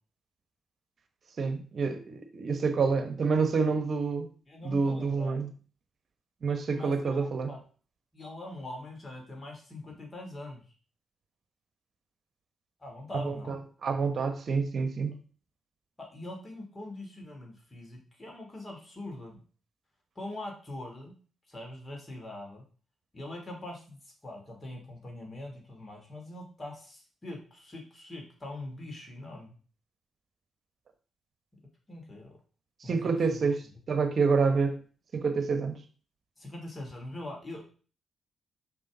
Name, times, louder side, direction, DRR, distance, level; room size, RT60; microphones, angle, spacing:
voice 1, 1.4-4.3 4.6-5.5 6.4-7.5 13.2-15.1 32.8-34.8 35.1-35.8, right 4 dB, 55° right, 8 dB, 1.1 m, -28 dB
voice 2, 4.5-5.4 6.7-7.6 8.1-10.6 12.8-13.6 16.0-19.4 20.1-21.1 21.5-22.6 23.1-29.6 31.9-32.4 32.8-33.5 36.4-37.7, left 1 dB, 30° left, 1 dB, 3.2 m, -43 dB
6.2 x 5.5 x 3.9 m, 0.39 s
supercardioid pair, 50°, 0 cm